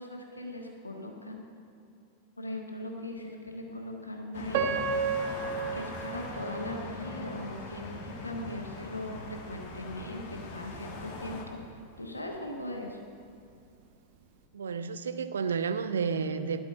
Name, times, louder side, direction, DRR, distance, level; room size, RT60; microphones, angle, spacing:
voice 1, 0.0-1.4 2.4-4.8 5.7-13.0, left 1 dB, 85° left, 1 dB, 1.5 m, -39 dB
sound 1, 4.3-11.4, left 2 dB, 45° left, 1.8 m, -42 dB
Piano, 4.5-7.5 8.1-8.2 8.9-9.1, right 5 dB, 50° right, 1.1 m, -33 dB
voice 2, 14.5-16.6, right 6 dB, 70° right, 11 dB, 0.6 m, -31 dB
12.5 x 5.5 x 8.8 m, 2.6 s
figure-of-eight pair, 90°, 0 cm